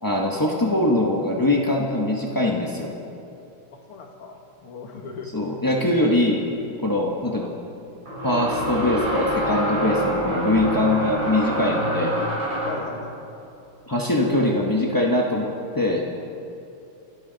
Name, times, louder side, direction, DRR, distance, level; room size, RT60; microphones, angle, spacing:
voice 1, 0.0-2.9 5.3-6.4 6.8-7.5 8.2-12.2 13.9-16.1, left 1 dB, 30° left, -1 dB, 0.4 m, -22 dB
voice 2, 3.7-5.3 6.9-7.2 11.7-11.9 12.6-13.2, left 5 dB, 80° left, 3 dB, 2.4 m, -38 dB
sound 1, 6.1-6.2 8.1-12.9, equal, 45° right, 5.6 m, -26 dB
28.5 x 12.0 x 4.0 m, 2.8 s
omnidirectional pair, 2.4 m